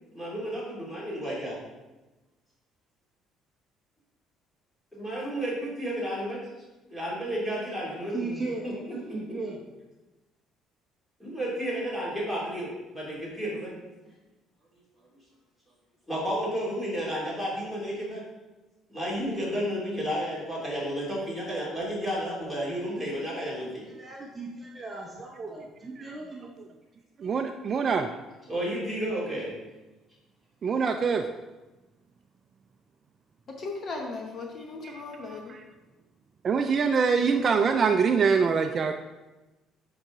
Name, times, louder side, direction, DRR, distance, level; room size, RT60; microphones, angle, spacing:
voice 1, 0.1-1.6 4.9-6.4 6.9-8.4 8.6-8.7 9.1-9.2 11.2-13.7 16.1-18.2 18.9-23.8 27.7-27.9 28.5-29.5, equal, 5° left, -6 dB, 2.7 m, -32 dB
voice 2, 8.1-9.6 23.8-26.5, right 3 dB, 15° right, -3 dB, 0.9 m, -37 dB
voice 3, 27.2-28.1 30.6-31.2 36.4-38.9, right 5 dB, 35° right, 6 dB, 0.3 m, -24 dB
voice 4, 33.5-35.6, left 3 dB, 35° left, 1 dB, 0.9 m, -37 dB
7.7 x 5.5 x 3.8 m, 1.1 s
cardioid pair, 155°, 0 cm